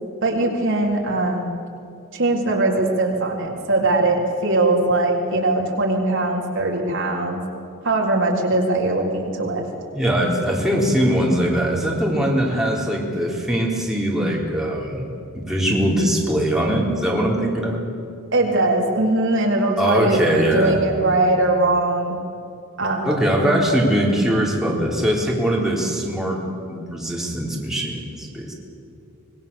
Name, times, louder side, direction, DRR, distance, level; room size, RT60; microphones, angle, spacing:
voice 1, 0.2-1.5 2.1-7.4 7.8-9.6 18.3-22.2 22.8-23.3, right 2 dB, 60° right, -1 dB, 3.8 m, -21 dB
voice 2, 9.9-15.0 15.3-17.8 19.8-20.8 23.0-26.4 26.7-28.5, equal, ahead, -3 dB, 3.9 m, -21 dB
25.5 x 21.5 x 7.1 m, 2.5 s
head